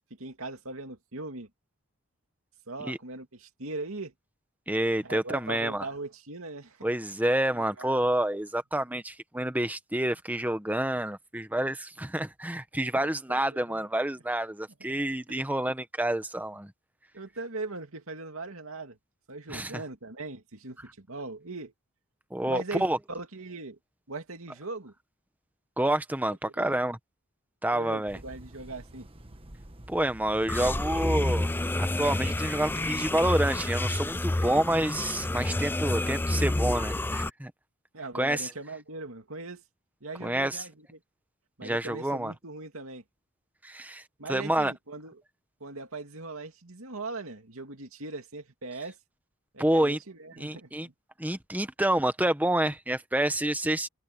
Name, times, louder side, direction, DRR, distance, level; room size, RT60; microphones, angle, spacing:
voice 1, 0.2-1.5 2.7-4.1 5.0-6.9 7.5-8.0 12.9-13.9 15.0-15.1 17.1-19.0 19.3-21.7 22.5-22.8 23.1-23.8 24.1-24.9 26.6-26.8 27.7-29.1 37.9-39.6 40.0-41.0 41.6-43.0 44.2-45.2 45.6-49.0 49.5-50.9, right 3 dB, 75° right, 2.6 m, -40 dB
voice 2, 4.7-5.9 6.8-16.7 19.5-19.8 22.3-23.0 25.8-27.0 27.6-28.2 29.9-37.5 38.1-38.5 40.2-40.6 41.6-42.3 43.6-44.0 44.3-44.7 49.6-50.0 50.4-50.9 51.2-53.9, right 1 dB, 10° right, 1.3 m, -28 dB
sound 1, 28.1-33.5, right 1 dB, 25° right, 1.4 m, -46 dB
sound 2, 30.5-37.3, left 1 dB, 10° left, 0.4 m, -29 dB
head